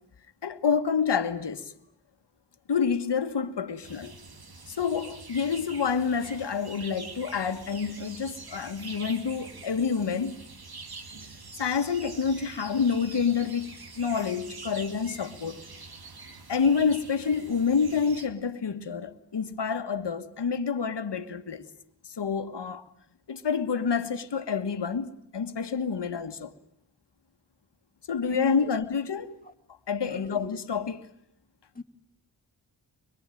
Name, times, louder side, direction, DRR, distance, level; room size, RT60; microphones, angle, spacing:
voice 1, 0.4-1.7 2.7-4.1 4.7-10.4 11.6-15.6 16.5-21.7 22.0-22.9 23.3-26.5 28.1-29.4 29.9-31.0, left 6 dB, 85° left, 1.6 m, -28 dB
sound 1, 3.8-18.3, right 3 dB, 60° right, 3.0 m, -45 dB
voice 2, 28.2-28.7 30.1-30.6 31.7-31.8, left 3 dB, 20° left, 2.2 m, -39 dB
24.5 x 23.0 x 9.1 m
wide cardioid pair, 95°, 41 cm